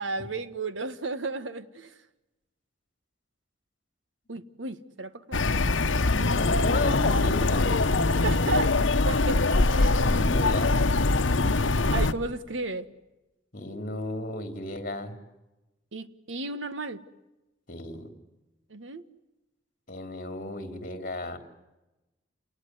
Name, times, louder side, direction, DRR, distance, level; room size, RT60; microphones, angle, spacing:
voice 1, 0.0-2.0 4.3-5.5 5.9-6.0 8.2-8.7 9.0-10.0 11.9-12.9 15.9-17.0 18.7-19.0, right 3 dB, 85° right, 12 dB, 1.5 m, -33 dB
sound 1, 5.3-12.1, left 3 dB, 90° left, 1.1 m, -23 dB
voice 2, 6.1-8.0 10.0-11.1 13.5-15.2 17.7-18.1 19.9-21.4, left 2 dB, 45° left, 8 dB, 3.3 m, -33 dB
29.5 x 19.5 x 9.5 m, 1.0 s
head